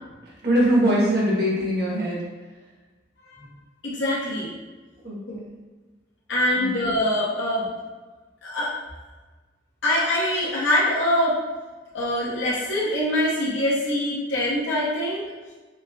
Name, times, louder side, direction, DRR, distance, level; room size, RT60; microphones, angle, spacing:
voice 1, 0.3-2.2 5.0-5.5 6.6-6.7, equal, 55° right, -5 dB, 1.2 m, -22 dB
voice 2, 3.8-4.5 5.3-5.4 6.3-7.7 8.4-8.7 9.8-11.4 11.9-15.2, left 1 dB, 85° left, -6 dB, 1.0 m, -24 dB
5.3 x 2.4 x 2.3 m, 1.3 s
head